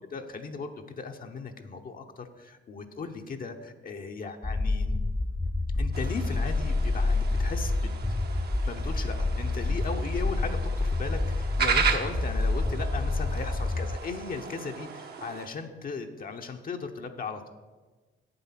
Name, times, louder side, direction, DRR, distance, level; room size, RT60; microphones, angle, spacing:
voice 1, 0.1-4.9 5.8-7.9 8.7-17.5, left 4 dB, 45° left, 4 dB, 0.9 m, -37 dB
sound 1, 4.4-14.0, left 2 dB, 10° left, 0.3 m, -28 dB
sound 2, 5.9-15.5, right 6 dB, 55° right, 1.1 m, -35 dB
8.0 x 7.8 x 5.9 m, 1.3 s
cardioid pair, 90°, 20 cm